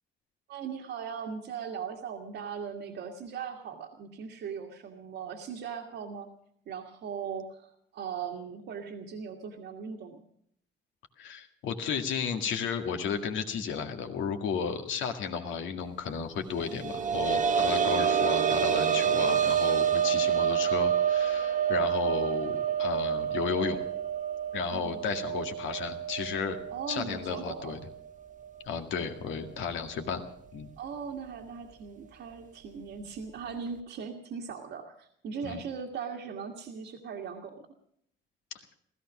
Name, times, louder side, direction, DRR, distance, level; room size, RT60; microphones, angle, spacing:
voice 1, 0.5-6.3 6.7-10.2 24.7-25.0 26.7-27.8 30.8-37.6, right 6 dB, 75° right, 0 dB, 1.8 m, -39 dB
voice 2, 11.2-23.8 24.5-26.6 26.9-27.8 28.7-30.2 30.5-30.7 35.4-35.6, left 6 dB, 85° left, 5 dB, 1.9 m, -33 dB
sound 1, 16.6-28.1 28.4-28.5 30.1-30.2, right 8 dB, 40° right, 1.1 m, -28 dB
16.0 x 14.5 x 6.1 m, 0.68 s
cardioid pair, 100°, 19 cm